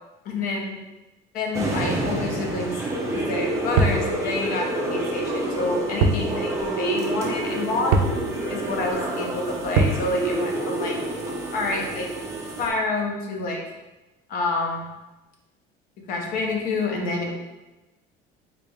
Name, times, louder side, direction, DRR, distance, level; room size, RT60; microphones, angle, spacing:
voice 1, 0.2-0.8 1.3-2.8 3.1-8.0 8.5-11.0 11.5-12.1 12.6-13.6 14.3-14.9 16.1-17.3, left 2 dB, 50° left, 1 dB, 0.7 m, -28 dB
sound 1, 1.5-12.7, right 1 dB, 15° right, 0.4 m, -28 dB
sound 2, 3.8-4.1 6.0-6.3 6.6-6.7 7.9-8.2 9.8-10.0, right 3 dB, 90° right, 0.4 m, -20 dB
3.8 x 3.2 x 2.3 m, 1.1 s
cardioid pair, 175°, 19 cm